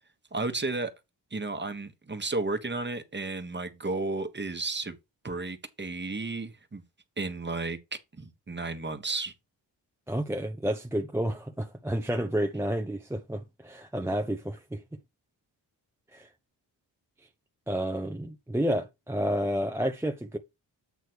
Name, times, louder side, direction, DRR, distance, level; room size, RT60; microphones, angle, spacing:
voice 1, 0.3-0.9 1.3-4.9 5.2-6.8 7.2-9.3, right 3 dB, 25° right, 1.4 m, -33 dB
voice 2, 10.1-14.8 16.1-16.3 17.7-20.4, equal, 5° right, 0.7 m, -30 dB
8.3 x 3.1 x 6.2 m
cardioid pair, 60°, 43 cm